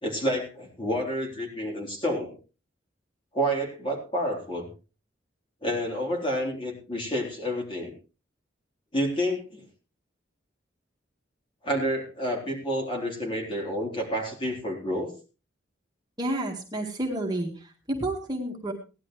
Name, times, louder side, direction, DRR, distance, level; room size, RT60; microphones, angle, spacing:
voice 1, 0.0-2.3 3.3-4.6 5.6-7.9 8.9-9.7 11.6-15.1, equal, 30° left, 0 dB, 3.8 m, -29 dB
voice 2, 16.2-18.7, right 1 dB, 20° right, 0 dB, 1.9 m, -30 dB
17.5 x 11.0 x 3.2 m, 0.32 s
head